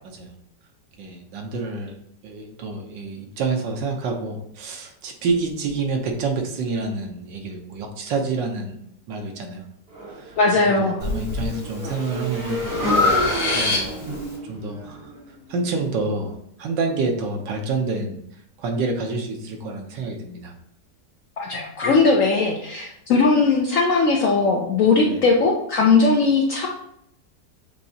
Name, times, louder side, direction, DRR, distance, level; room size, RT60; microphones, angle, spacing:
voice 1, 1.0-2.0 2.2-8.8 9.1-9.6 10.0-10.4 10.8-12.6 13.1-15.1 15.5-18.2 18.6-20.5 25.1-25.2, right 3 dB, 80° right, 3 dB, 1.5 m, -28 dB
Motorcycle / Engine, 9.9-16.0, right 1 dB, 35° right, 1.9 m, -32 dB
voice 2, 10.4-11.0 21.4-26.7, left 4 dB, 70° left, 0 dB, 0.8 m, -19 dB
Breathing, 11.0-11.5 12.0-14.2, left 3 dB, 50° left, 2.1 m, -23 dB
6.5 x 2.8 x 2.7 m, 0.74 s
omnidirectional pair, 1.9 m